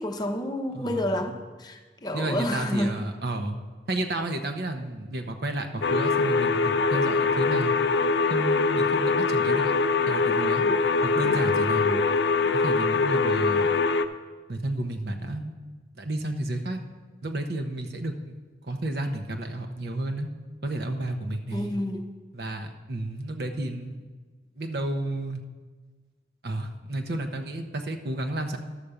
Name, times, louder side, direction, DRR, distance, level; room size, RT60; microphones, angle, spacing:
voice 1, 0.0-3.0 21.5-22.1, left 1 dB, 25° left, 4 dB, 0.7 m, -29 dB
voice 2, 0.7-1.2 2.1-3.6 3.9-6.6 6.9-7.7 8.3-9.7 10.1-10.6 11.0-12.1 12.6-13.7 14.5-15.6 16.0-16.8 17.2-18.3 18.6-20.3 20.6-21.7 22.3-24.0 24.6-25.4 26.4-28.6, right 1 dB, 65° right, 5 dB, 0.8 m, -31 dB
sound 1, 5.8-14.1, left 4 dB, 80° left, 0.5 m, -23 dB
11.5 x 5.1 x 6.9 m, 1.4 s
head